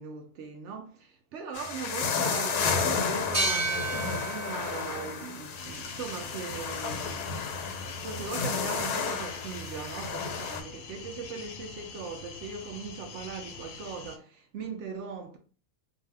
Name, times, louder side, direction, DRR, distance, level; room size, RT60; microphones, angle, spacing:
voice 1, 0.0-7.2 8.0-15.4, right 5 dB, 65° right, 0.7 m, -39 dB
sound 1, 1.5-10.6, left 5 dB, 90° left, 1.1 m, -32 dB
sound 2, 3.3-6.7, right 2 dB, 35° right, 1.1 m, -34 dB
sound 3, 5.6-14.2, left 5 dB, 70° left, 0.9 m, -44 dB
2.6 x 2.3 x 3.3 m
omnidirectional pair, 1.6 m